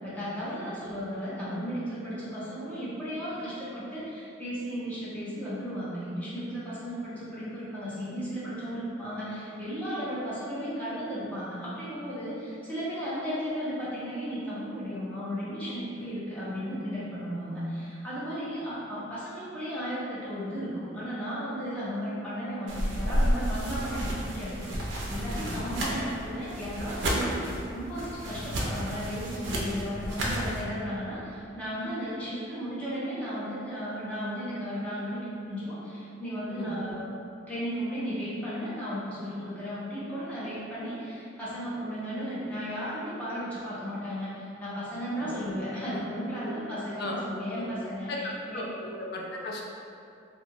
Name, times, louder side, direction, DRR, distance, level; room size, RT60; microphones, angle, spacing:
voice 1, 0.0-37.1 37.5-48.7, equal, 5° left, -11 dB, 0.6 m, -35 dB
sound 1, 22.7-30.6, equal, 65° right, 0.4 m, -31 dB
voice 2, 25.4-25.9 36.6-36.9 45.2-45.3 47.0-47.2 47.5-47.7 48.1-49.6, left 2 dB, 55° left, -1 dB, 0.3 m, -36 dB
2.7 x 2.0 x 2.6 m, 2.5 s
head